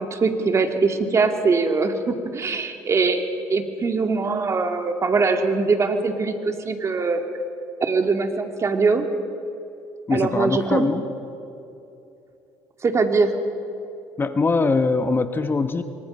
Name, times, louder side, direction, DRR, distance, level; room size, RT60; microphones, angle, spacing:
voice 1, 0.0-7.3 7.8-9.1 10.1-10.9 12.8-13.3, right 4 dB, 35° right, 5 dB, 2.4 m, -22 dB
voice 2, 10.1-11.0 14.2-15.8, left 3 dB, 25° left, 9 dB, 1.3 m, -22 dB
24.5 x 23.0 x 5.6 m, 2.8 s
supercardioid pair, 75°, 8 cm